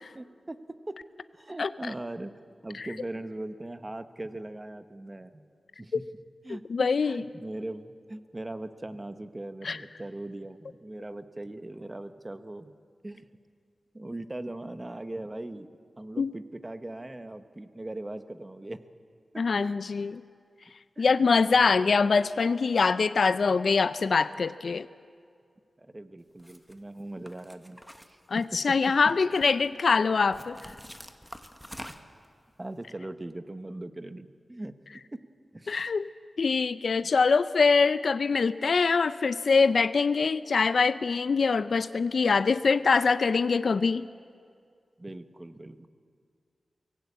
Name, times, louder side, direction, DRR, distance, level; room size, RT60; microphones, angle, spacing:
voice 1, 0.1-0.6 0.9-1.0 1.3-2.3 2.6-5.5 5.8-6.0 6.4-12.7 13.0-13.2 13.9-15.7 16.0-18.8 19.3-19.8 21.0-21.1 21.5-22.1 25.8-27.8 28.1-28.8 29.0-29.1 32.6-34.7 35.1-35.2 35.5-35.9 37.0-37.1 45.0-45.9, right 1 dB, 25° right, 10 dB, 1.0 m, -40 dB
voice 2, 1.6-1.9 2.8-2.9 6.7-7.2 9.6-9.8 16.2-16.3 19.4-20.2 21.0-24.9 28.3-30.6 35.7-36.1 36.4-44.1, left 4 dB, 70° left, 14 dB, 0.5 m, -24 dB
sound 1, 26.4-26.7 27.3-28.7 29.1-29.7 30.3-32.3, equal, ahead, 1.2 m, -46 dB
23.5 x 17.0 x 8.5 m, 2.2 s
wide cardioid pair, 90°, 0 cm